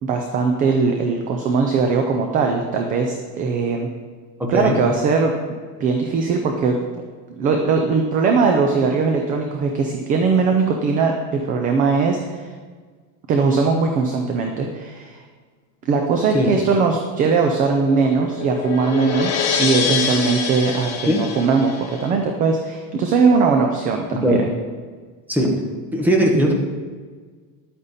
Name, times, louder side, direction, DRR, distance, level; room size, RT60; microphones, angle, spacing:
voice 1, 0.0-3.9 4.5-5.3 5.8-6.8 7.4-12.5 13.3-15.2 15.8-24.4, right 4 dB, 20° right, 3 dB, 0.3 m, -20 dB
voice 2, 4.4-4.8 16.3-16.5 21.1-21.2 24.1-24.4 25.3-25.5 25.9-26.5, equal, 5° right, -1 dB, 1.1 m, -18 dB
sound 1, 17.3-22.1, left 7 dB, 40° left, 1.4 m, -26 dB
11.0 x 8.7 x 4.1 m, 1.5 s
cardioid pair, 170°, 44 cm